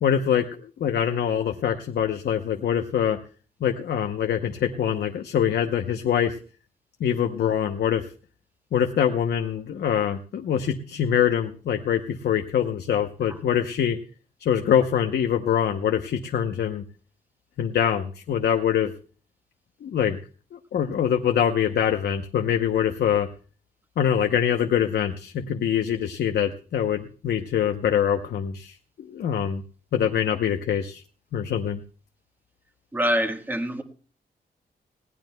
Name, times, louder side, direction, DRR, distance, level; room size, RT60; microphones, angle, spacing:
voice 1, 0.0-3.2 3.6-6.4 7.0-8.1 8.7-14.0 14.4-16.8 17.6-18.9 19.8-20.2 20.5-23.3 24.0-29.6 29.9-31.0 31.3-31.8, left 9 dB, 80° left, 5 dB, 0.8 m, -24 dB
voice 2, 32.9-33.8, equal, 10° right, 5 dB, 1.4 m, -25 dB
20.0 x 16.5 x 2.2 m, 0.39 s
wide cardioid pair, 155°, 17 cm